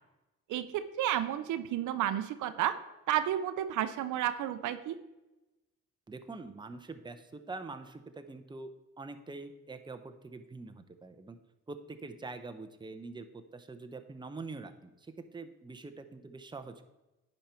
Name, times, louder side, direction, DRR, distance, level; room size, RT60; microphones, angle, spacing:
voice 1, 0.5-2.7 3.1-5.0, right 11 dB, 80° right, 11 dB, 0.7 m, -31 dB
voice 2, 6.1-8.7 9.0-11.4 11.7-16.8, right 3 dB, 15° right, 7 dB, 0.8 m, -45 dB
10.0 x 5.4 x 4.5 m, 1.0 s
cardioid pair, 90°, 30 cm